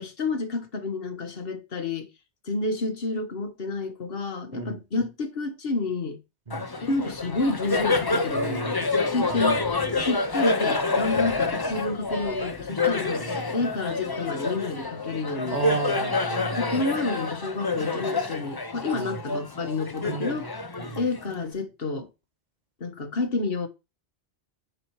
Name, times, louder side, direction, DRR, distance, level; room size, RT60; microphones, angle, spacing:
voice 1, 0.0-2.1 2.4-6.2 6.8-9.6 10.0-13.2 13.5-15.6 16.6-20.5 21.0-22.1 22.8-23.7, left 3 dB, 60° left, 1.6 m, -29 dB
Laughter, 6.5-21.5, left 3 dB, 25° left, 0.7 m, -28 dB
voice 2, 8.3-8.9 9.5-9.6 9.9-10.0 11.2-11.3 13.2-13.6 15.5-16.9 18.9-19.2 20.0-20.5 20.8-21.0, right 3 dB, 40° right, 1.4 m, -33 dB
9.8 x 4.3 x 4.8 m
omnidirectional pair, 1.1 m